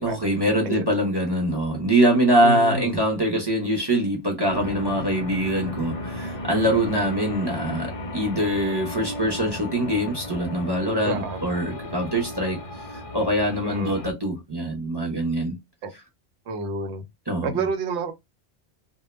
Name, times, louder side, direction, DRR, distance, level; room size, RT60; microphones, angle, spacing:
voice 1, 0.0-12.6 12.9-15.6 17.3-17.7, right 1 dB, 25° right, 0.7 m, -23 dB
voice 2, 2.4-3.0 11.1-11.4 13.6-13.9 15.8-15.9 16.5-17.0 17.4-18.1, right 3 dB, 90° right, 0.9 m, -29 dB
sound 1, 4.5-14.1, left 1 dB, 45° left, 0.4 m, -34 dB
2.2 x 2.1 x 3.0 m
omnidirectional pair, 1.1 m